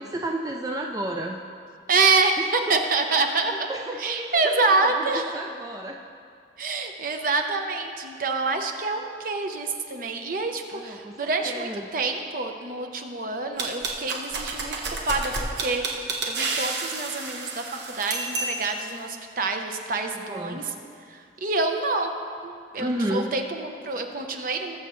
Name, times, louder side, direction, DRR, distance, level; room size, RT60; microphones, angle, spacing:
voice 1, 0.0-1.4 2.4-2.8 3.7-6.0 10.7-11.9 20.3-20.6 22.8-23.3, right 1 dB, 20° right, 1 dB, 0.4 m, -32 dB
voice 2, 1.9-3.7 4.0-5.3 6.6-14.7 15.0-20.7 21.1-22.1 22.4-24.8, right 3 dB, 50° right, 4 dB, 0.9 m, -27 dB
sound 1, 13.6-18.9, right 3 dB, 75° right, 1.2 m, -30 dB
20.5 x 7.0 x 3.1 m, 2.4 s
head